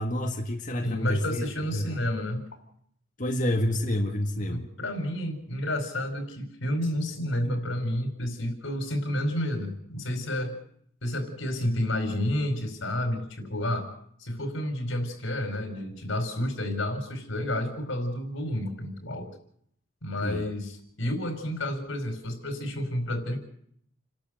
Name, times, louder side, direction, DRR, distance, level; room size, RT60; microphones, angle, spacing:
voice 1, 0.0-2.0 3.2-4.7 20.2-20.4, left 1 dB, 40° left, 1 dB, 1.9 m, -28 dB
voice 2, 0.8-2.4 4.5-10.6 11.0-13.9 14.2-19.3 20.0-23.4, left 1 dB, 85° left, 6 dB, 4.9 m, -30 dB
30.0 x 12.5 x 7.9 m, 0.69 s
head